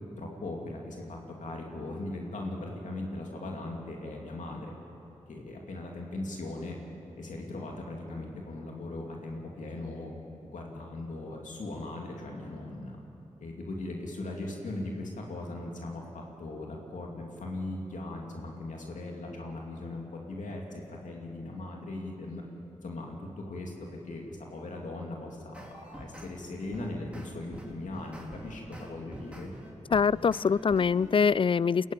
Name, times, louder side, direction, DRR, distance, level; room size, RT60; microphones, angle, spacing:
voice 1, 0.2-4.7 5.3-6.8 7.2-10.1 10.5-13.0 13.4-22.4 22.8-29.5, left 2 dB, 80° left, 0 dB, 2.7 m, -39 dB
sound 1, 25.5-26.3 26.7-31.2, equal, 10° right, 3.7 m, -46 dB
voice 2, 29.9-31.9, left 6 dB, 45° left, 22 dB, 0.4 m, -24 dB
21.5 x 16.0 x 9.1 m, 2.9 s
cardioid pair, 45°, 13 cm